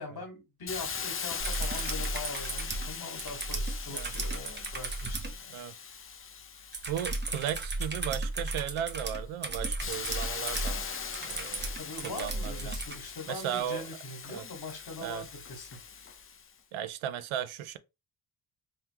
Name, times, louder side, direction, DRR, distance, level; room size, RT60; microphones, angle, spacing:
voice 1, 0.0-5.6 11.8-15.7, left 3 dB, 50° left, 1.9 m, -42 dB
Hiss, 0.7-8.2 8.7-16.5, left 6 dB, 25° left, 0.6 m, -40 dB
sound 1, 1.4-5.4 6.7-13.0 14.7-14.8, right 2 dB, 20° right, 0.8 m, -35 dB
voice 2, 6.9-11.0 11.2-11.7 12.0-12.8 13.3-13.9 14.3-14.4 15.0-15.2 16.7-17.8, right 10 dB, 75° right, 0.6 m, -36 dB
3.6 x 3.0 x 2.9 m
supercardioid pair, 70°, 49 cm